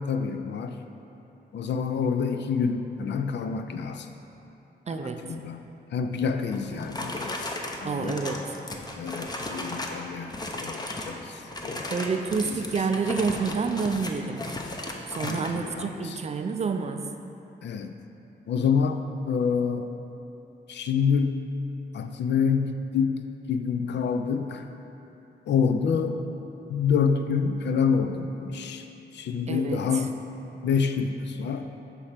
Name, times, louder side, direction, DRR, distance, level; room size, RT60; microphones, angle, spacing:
voice 1, 0.1-0.8 1.5-4.1 4.9-8.2 9.0-12.8 15.2-16.2 17.6-17.9 18.5-19.9 20.7-21.4 21.9-23.2 23.5-24.7 25.5-26.2 26.7-28.9 29.1-30.1 30.6-31.7, left 6 dB, 70° left, 7 dB, 0.4 m, -27 dB
voice 2, 4.9-5.2 7.8-8.6 11.9-14.5 15.1-17.0 29.5-30.1, right 5 dB, 35° right, 6 dB, 0.4 m, -28 dB
sound 1, 6.5-10.0 10.3-11.2 11.5-15.6, left 2 dB, 20° left, 0.6 m, -35 dB
6.0 x 3.3 x 5.6 m, 2.9 s
cardioid pair, 75°, 19 cm